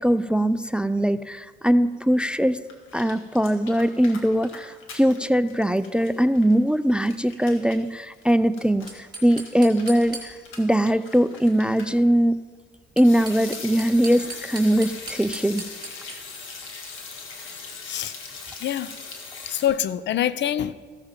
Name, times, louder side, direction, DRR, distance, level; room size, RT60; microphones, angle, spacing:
voice 1, 0.0-2.6 2.9-12.4 13.0-15.6, equal, 5° right, 15 dB, 0.3 m, -21 dB
sound 1, 2.2-5.2 5.5-12.0 13.0-19.7, left 4 dB, 85° left, 1.9 m, -40 dB
sound 2, 8.9-10.7 12.8-16.4, right 2 dB, 20° right, 3.0 m, -39 dB
voice 2, 18.6-18.9 19.5-20.7, left 10 dB, 65° left, 17 dB, 0.5 m, -25 dB
14.5 x 7.1 x 5.2 m, 1.5 s
cardioid pair, 90°, 20 cm